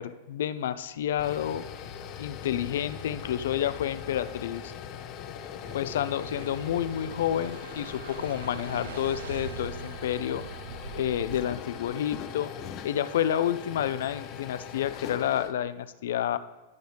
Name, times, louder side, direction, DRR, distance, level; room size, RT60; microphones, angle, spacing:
voice 1, 0.0-1.6 2.2-4.7 5.7-10.4 10.9-12.5 12.8-16.4, left 10 dB, 75° left, 14 dB, 0.4 m, -29 dB
sound 1, 1.0-15.5, left 8 dB, 45° left, 0.7 m, -41 dB
sound 2, 5.6-11.9, right 5 dB, 85° right, 0.6 m, -42 dB
12.0 x 6.2 x 3.4 m, 1.2 s
hypercardioid pair, 120°, 0 cm